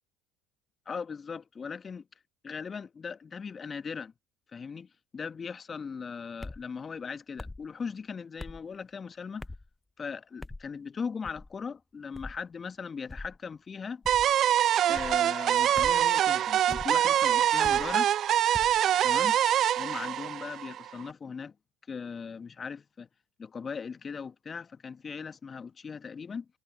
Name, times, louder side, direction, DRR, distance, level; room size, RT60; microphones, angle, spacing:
voice 1, 0.9-2.1 2.4-4.1 4.5-9.5 10.0-14.0 14.9-18.1 19.0-19.4 19.8-21.5 21.9-23.1 23.4-26.5, left 5 dB, 30° left, 2.0 m, -39 dB
sound 1, 6.4-6.6 7.4-7.7 8.4-8.6 9.4-9.7 10.4-10.7 11.2-11.5 12.1-12.4 13.1-13.4 14.0-14.4 14.9-15.2 15.8-16.1 16.7-16.9 17.6-17.9 18.5-18.8, left 2 dB, 15° left, 0.9 m, -42 dB
sound 2, 14.1-21.0, right 11 dB, 50° right, 0.4 m, -25 dB
hypercardioid pair, 65°, 0 cm